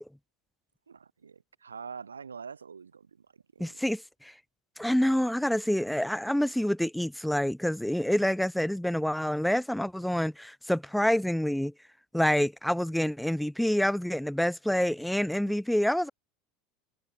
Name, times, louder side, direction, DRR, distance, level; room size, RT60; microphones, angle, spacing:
voice 1, 0.9-3.8 15.3-15.6, right 6 dB, 90° right, 1.3 m, -45 dB
voice 2, 3.6-4.3 4.8-11.7 12.1-16.1, equal, ahead, 0.9 m, -27 dB
hypercardioid pair, 80°, 0 cm